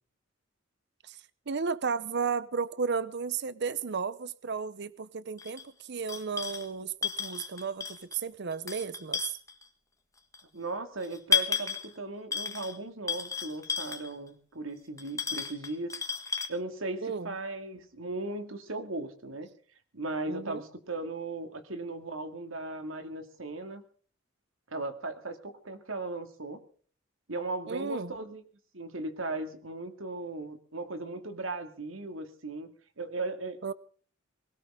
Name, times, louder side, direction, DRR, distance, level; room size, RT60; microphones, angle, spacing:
voice 1, 1.0-9.4 17.0-17.3 20.3-20.6 27.7-28.1 33.6-33.7, right 5 dB, 60° right, 0.7 m, -34 dB
sound 1, 5.4-5.6 6.1-6.7 7.0-8.2 8.5-9.6 10.3-10.4 11.0-11.9 12.3-12.8 13.1-14.1 15.0-16.5, left 6 dB, 15° left, 1.6 m, -32 dB
voice 2, 10.5-15.9 16.5-19.5 19.9-23.8 24.7-26.6 27.3-28.4 28.7-33.7, right 2 dB, 85° right, 2.3 m, -37 dB
20.5 x 17.5 x 3.7 m
head